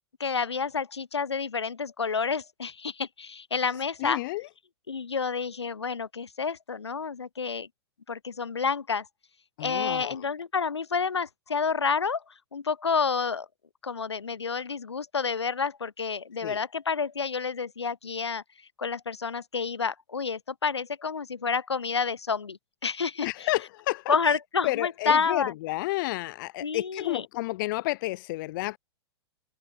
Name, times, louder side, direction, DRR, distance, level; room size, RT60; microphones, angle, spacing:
voice 1, 0.2-4.2 4.9-7.7 8.1-9.1 9.6-12.2 12.5-13.5 13.8-18.4 18.8-23.5 24.1-25.5 26.6-27.3, left 5 dB, 80° left, 4.5 m, -29 dB
voice 2, 4.0-4.4 9.6-10.2 16.4-16.6 23.2-24.4 24.6-28.8, left 19 dB, 50° left, 1.1 m, -31 dB
figure-of-eight pair, 105°, 14 cm